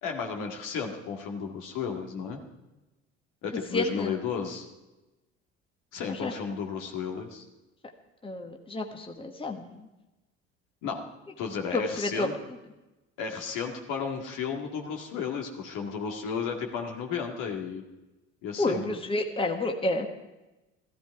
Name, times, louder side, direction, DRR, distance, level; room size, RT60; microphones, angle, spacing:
voice 1, 0.0-2.4 3.4-4.7 5.9-7.4 10.8-11.0 11.4-12.3 13.2-17.8 18.4-19.0, left 6 dB, 65° left, 2 dB, 2.1 m, -33 dB
voice 2, 3.7-4.2 6.1-6.3 8.2-9.8 11.7-12.3 18.6-20.1, left 2 dB, 15° left, 4 dB, 1.4 m, -30 dB
14.5 x 13.5 x 4.7 m, 1.0 s
hypercardioid pair, 65°, 34 cm